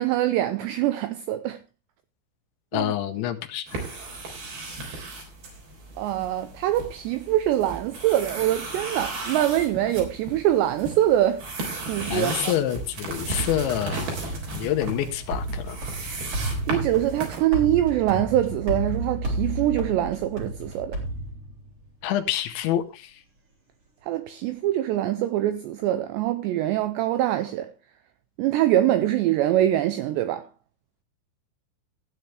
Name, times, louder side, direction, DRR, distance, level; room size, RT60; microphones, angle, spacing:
voice 1, 0.0-1.6 2.7-2.9 6.0-11.5 11.8-12.5 16.3-21.0 24.1-27.7 28.4-30.5, right 13 dB, 85° right, 2.5 m, -24 dB
voice 2, 2.7-3.9 12.1-14.1 14.5-15.8 22.0-23.2, left 11 dB, 75° left, 3.0 m, -27 dB
sound 1, 3.7-17.4, right 3 dB, 50° right, 5.2 m, -35 dB
sound 2, 13.1-21.9, right 1 dB, 30° right, 3.3 m, -32 dB
15.5 x 9.1 x 3.3 m
omnidirectional pair, 5.7 m